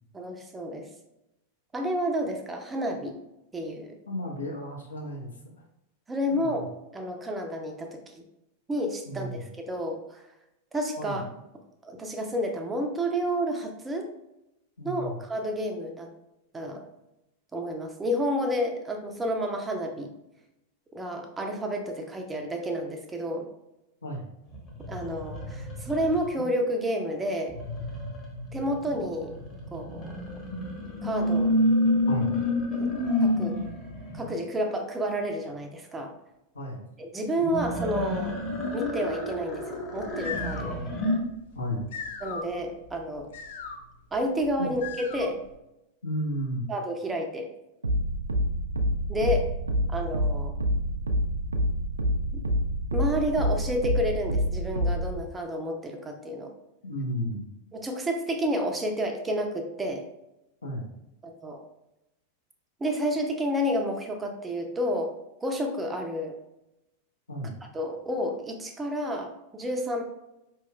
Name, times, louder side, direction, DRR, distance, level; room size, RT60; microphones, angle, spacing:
voice 1, 0.1-0.9 1.7-3.1 3.5-3.9 6.1-8.2 8.7-10.2 10.7-11.2 11.8-14.1 14.8-16.1 16.5-16.8 17.5-20.1 20.9-23.5 24.9-27.6 28.5-29.4 29.7-30.2 31.0-31.5 32.7-32.9 33.2-33.6 34.1-36.1 37.0-38.4 38.7-40.8 42.2-43.3 44.1-45.4 46.7-47.5 49.1-49.5 49.9-50.5 52.9-56.5 57.7-60.0 61.2-61.6 62.8-65.1 65.4-66.4 67.7-70.0, equal, 15° right, 3 dB, 0.5 m, -30 dB
voice 2, 4.1-5.3 6.3-6.7 9.1-9.4 11.0-11.3 14.8-15.2 24.0-24.3 32.1-32.4 36.5-36.9 41.5-41.9 44.6-44.7 46.0-46.7 56.8-57.5 60.6-60.9 67.3-67.6, equal, 75° left, -1 dB, 0.8 m, -33 dB
sound 1, 24.5-26.4 27.5-34.3 37.4-41.2, left 1 dB, 25° left, 0.9 m, -29 dB
sound 2, 40.0-45.6, left 5 dB, 55° left, 0.4 m, -40 dB
sound 3, 47.8-55.2, equal, 80° right, 0.3 m, -27 dB
4.7 x 3.0 x 2.2 m, 0.89 s
figure-of-eight pair, 90°, 0 cm